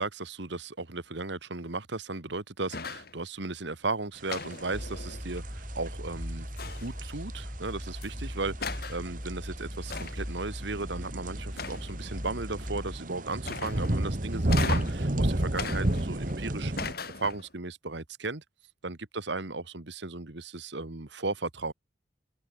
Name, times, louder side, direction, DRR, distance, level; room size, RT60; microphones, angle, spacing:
voice 1, 0.0-16.7 17.2-18.4 18.8-21.7, right 3 dB, 65° right, 1.6 m, -36 dB
sound 1, 2.7-3.2 4.3-5.4 6.6-7.1 8.0-8.1 8.6-9.0 9.9-10.4 11.6-12.1 13.4-14.0 14.5-15.1 15.6-16.3 16.8-17.5, left 4 dB, 50° left, 3.3 m, -37 dB
sound 2, 4.2-16.9, right 1 dB, 45° right, 1.6 m, -32 dB
sound 3, 4.7-13.0, equal, 15° left, 2.8 m, -39 dB
head